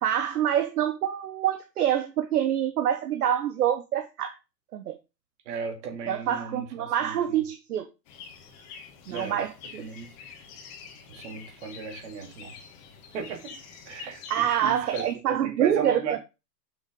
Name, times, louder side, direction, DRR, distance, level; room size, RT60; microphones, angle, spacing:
voice 1, 0.0-4.4 4.7-5.0 6.1-7.9 9.1-9.9 14.3-16.2, right 10 dB, 60° right, 1.1 m, -26 dB
voice 2, 5.5-7.4 9.1-9.4 9.8-10.1 11.1-12.6 13.1-13.6 13.9-16.2, right 6 dB, 45° right, 2.6 m, -35 dB
sound 1, 8.1-15.1, left 6 dB, 30° left, 1.7 m, -46 dB
6.5 x 6.4 x 3.7 m
hypercardioid pair, 155°, 50 cm